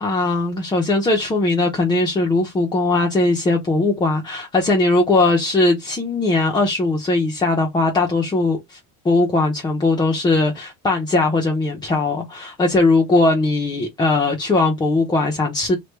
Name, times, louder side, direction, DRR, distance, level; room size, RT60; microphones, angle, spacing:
voice 1, 0.0-8.8 9.0-15.8, left 2 dB, 10° left, 0.4 m, -19 dB
3.1 x 2.2 x 3.1 m
cardioid pair, 135°, 40 cm